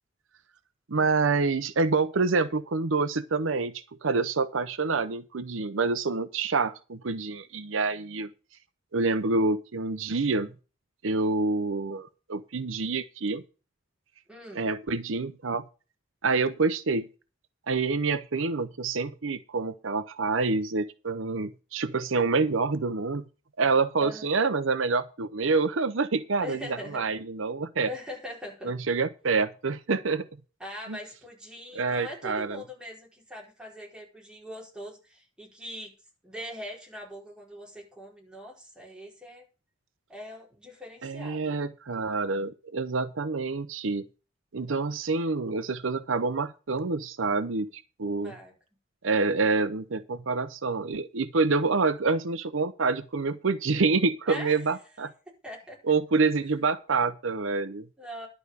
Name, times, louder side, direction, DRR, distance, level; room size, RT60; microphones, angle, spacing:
voice 1, 0.9-8.3 8.9-10.5 11.0-13.4 14.5-15.6 16.2-17.1 17.7-23.2 23.6-27.9 28.6-30.3 30.9-31.0 31.7-32.6 41.0-44.1 44.5-47.7 48.0-48.3 49.0-55.1 55.8-57.9, right 4 dB, 75° right, 12 dB, 0.8 m, -27 dB
voice 2, 14.3-14.7 24.0-24.3 26.4-27.1 27.9-28.7 30.6-35.9 36.2-39.5 40.1-41.5 48.2-48.5 54.3-54.6 55.4-55.8 58.0-58.3, left 1 dB, 5° right, -3 dB, 4.8 m, -41 dB
11.5 x 5.0 x 8.2 m, 0.33 s
head